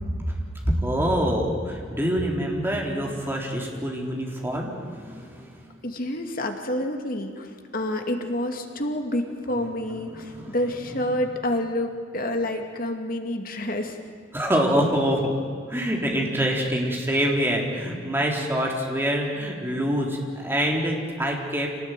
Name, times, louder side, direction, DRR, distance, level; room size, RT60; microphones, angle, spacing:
voice 1, 0.6-5.5 10.1-10.6 14.3-15.3 15.7-21.7, equal, 10° right, -1 dB, 3.7 m, -25 dB
voice 2, 5.8-14.0, left 1 dB, 45° left, 4 dB, 2.4 m, -28 dB
26.5 x 18.5 x 9.1 m, 2.2 s
head